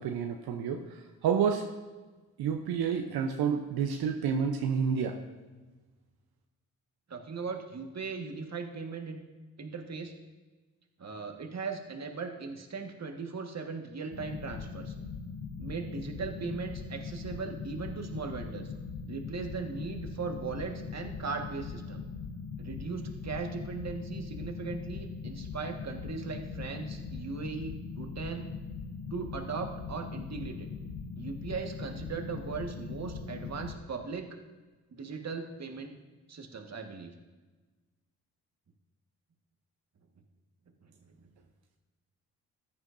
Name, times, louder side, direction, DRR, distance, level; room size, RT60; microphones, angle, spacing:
voice 1, 0.0-1.7 2.4-5.2, right 7 dB, 80° right, 4 dB, 0.8 m, -29 dB
voice 2, 7.1-9.2 9.6-10.1 11.0-14.9 15.6-18.7 19.0-22.0 22.6-28.5 29.1-30.7 31.1-34.3 34.9-35.9 36.3-37.1 40.8-40.9, right 4 dB, 45° right, 3 dB, 1.6 m, -38 dB
sound 1, 14.1-33.7, left 5 dB, 60° left, 1.0 m, -41 dB
14.5 x 9.6 x 2.6 m, 1.3 s
supercardioid pair, 50°, 37 cm